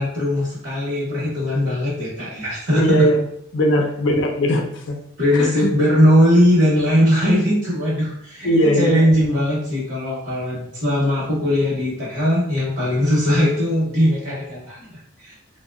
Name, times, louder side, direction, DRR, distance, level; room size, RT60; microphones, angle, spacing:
voice 1, 0.0-3.1 5.2-14.8 15.2-15.3, equal, 55° right, -7 dB, 0.9 m, -19 dB
voice 2, 2.8-3.2 3.5-5.0 5.3-5.7 8.4-9.0, equal, 60° left, 2 dB, 0.4 m, -19 dB
2.8 x 2.1 x 2.3 m, 0.72 s
head